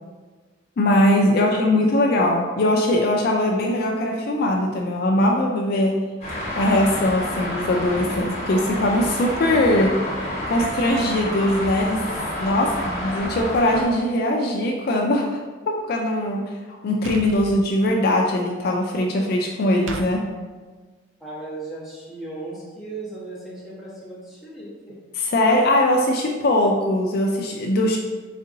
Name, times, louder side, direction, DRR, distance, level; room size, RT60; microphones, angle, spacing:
voice 1, 0.8-6.0 6.6-10.0 10.5-12.0 12.4-15.4 15.7-16.6 16.8-20.2 25.2-28.0, left 1 dB, 50° left, 1 dB, 0.3 m, -21 dB
Traffic noise roadway noise, 6.2-13.8, equal, 30° left, 1.1 m, -29 dB
voice 2, 12.6-13.1 21.2-25.0, right 2 dB, ahead, -8 dB, 1.1 m, -37 dB
sound 1, 17.0-17.6 19.9-20.1, right 3 dB, 75° right, 0.4 m, -33 dB
4.1 x 3.6 x 2.6 m, 1.4 s
head